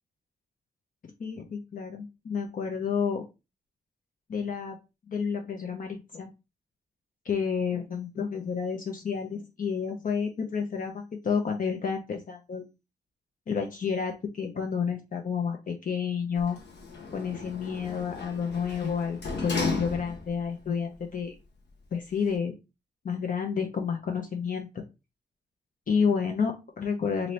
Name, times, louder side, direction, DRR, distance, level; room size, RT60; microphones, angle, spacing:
voice 1, 1.2-3.2 4.3-4.8 5.1-6.3 7.2-12.6 13.5-16.6 17.1-21.3 21.9-22.5 23.0-24.8 25.9-27.3, left 6 dB, 50° left, 2 dB, 0.6 m, -30 dB
Sliding door, 16.4-20.5 20.9-21.0, left 3 dB, 80° left, 0.9 m, -35 dB
2.8 x 2.7 x 3.1 m, 0.27 s
cardioid pair, 70°, 17 cm